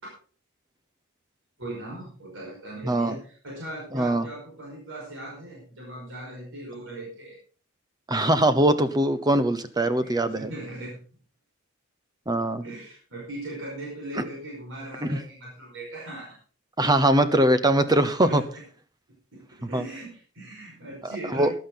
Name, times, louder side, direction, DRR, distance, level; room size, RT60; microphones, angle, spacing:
voice 1, 1.6-7.4 9.9-11.0 12.6-16.4 18.2-18.6 19.3-21.5, right 1 dB, 60° right, -3 dB, 5.3 m, -39 dB
voice 2, 2.8-3.2 3.9-4.3 8.1-10.5 12.3-12.6 14.2-14.3 15.0-15.2 16.8-18.4 19.6-19.8 21.3-21.5, right 1 dB, 20° right, 12 dB, 0.8 m, -22 dB
14.5 x 11.0 x 3.9 m, 0.41 s
head